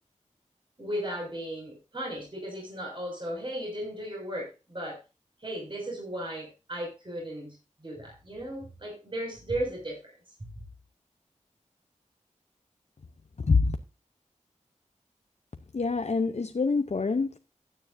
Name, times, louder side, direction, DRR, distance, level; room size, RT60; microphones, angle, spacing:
voice 1, 0.8-5.0 5.4-7.6 7.8-10.0, right 1 dB, 40° right, 6.0 m, -35 dB
voice 2, 15.7-17.4, left 4 dB, 60° left, 0.7 m, -25 dB
16.0 x 9.7 x 2.6 m
wide cardioid pair, 75°, 13 cm